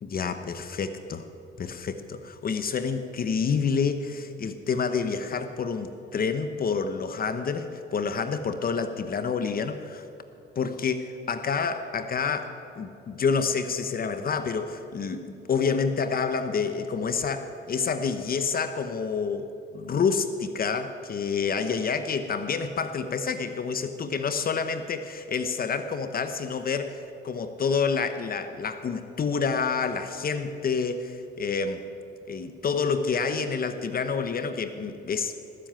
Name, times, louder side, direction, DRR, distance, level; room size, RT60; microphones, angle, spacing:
voice 1, 0.0-1.3 1.6-10.0 10.6-31.8 32.3-35.3, left 5 dB, 50° left, 9 dB, 0.9 m, -28 dB
19.0 x 7.7 x 8.9 m, 2.6 s
cardioid pair, 90°, 20 cm